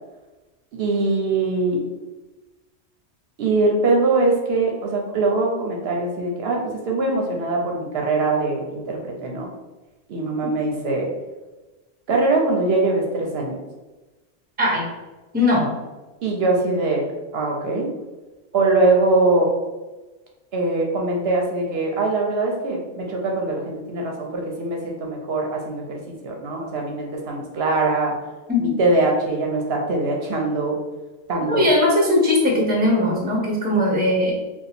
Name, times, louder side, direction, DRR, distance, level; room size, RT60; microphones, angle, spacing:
voice 1, 0.7-1.8 3.4-9.5 10.1-11.1 12.1-13.6 16.2-17.1 17.3-17.9 18.5-19.5 20.5-28.1 28.6-30.8 31.3-31.7, right 2 dB, 65° right, 0 dB, 0.7 m, -22 dB
voice 2, 15.3-15.7 28.5-28.8 31.4-34.3, left 1 dB, 10° right, -3 dB, 0.6 m, -19 dB
2.7 x 2.3 x 4.0 m, 1.2 s
omnidirectional pair, 1.2 m